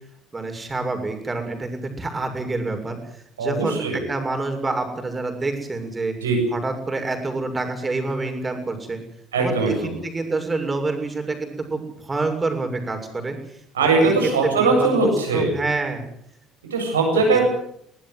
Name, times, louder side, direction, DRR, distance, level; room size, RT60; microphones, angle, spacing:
voice 1, 0.3-3.0 3.4-6.2 6.5-9.0 9.4-9.7 10.0-13.4 13.8-14.1 14.4-16.0 17.3-17.4, right 3 dB, 20° right, 5 dB, 7.0 m, -27 dB
voice 2, 3.4-4.0 6.2-6.4 9.3-9.9 13.7-15.5 16.7-17.4, right 3 dB, 85° right, 3 dB, 7.7 m, -20 dB
23.0 x 19.0 x 8.0 m, 0.69 s
hypercardioid pair, 60°, 0 cm